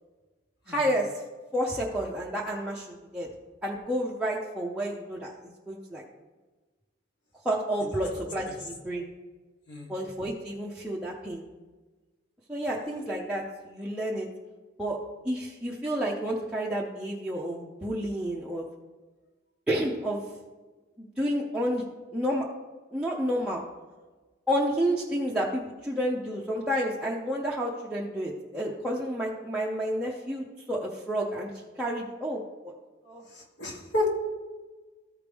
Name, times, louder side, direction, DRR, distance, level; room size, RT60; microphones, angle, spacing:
voice 1, 0.7-1.1 1.5-3.3 3.6-5.3 5.7-6.0 7.4-9.1 9.9-11.4 12.5-14.3 14.8-15.0 15.2-18.7 19.7-20.2 21.0-21.8 22.1-22.4 22.9-23.6 24.5-31.5 31.8-32.7 33.0-33.2, equal, 5° right, -5 dB, 0.6 m, -30 dB
voice 2, 33.3-34.2, left 2 dB, 65° left, 0 dB, 1.5 m, -31 dB
13.5 x 4.8 x 3.4 m, 1.3 s
head